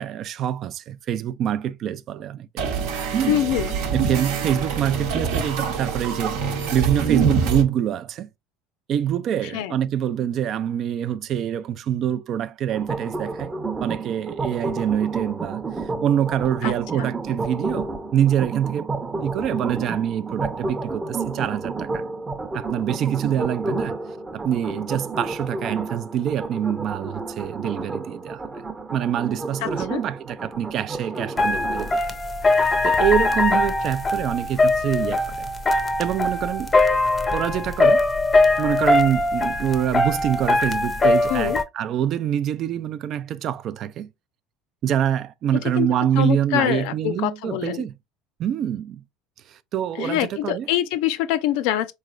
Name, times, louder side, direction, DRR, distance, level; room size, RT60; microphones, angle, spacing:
voice 1, 0.0-2.5 3.1-3.4 3.9-8.3 8.9-13.5 13.8-18.9 19.2-22.1 22.5-24.0 24.3-28.7 28.9-32.0 32.8-35.5 36.0-36.7 37.3-38.0 38.6-44.1 44.8-47.9 48.4-49.0 49.5-50.7, right 10 dB, 50° right, 0.4 m, -25 dB
sound 1, 2.6-7.6, right 6 dB, 75° right, 0.8 m, -25 dB
voice 2, 3.3-3.7 9.4-9.8 16.6-17.1 29.6-30.0 41.3-41.6 45.8-45.9 46.1-47.9 50.0-51.9, left 12 dB, 75° left, 0.4 m, -25 dB
sound 2, 12.7-31.9, right 3 dB, 20° right, 0.7 m, -31 dB
sound 3, 31.4-41.6, left 2 dB, 25° left, 0.6 m, -21 dB
3.8 x 3.1 x 2.4 m
supercardioid pair, 100°, 0 cm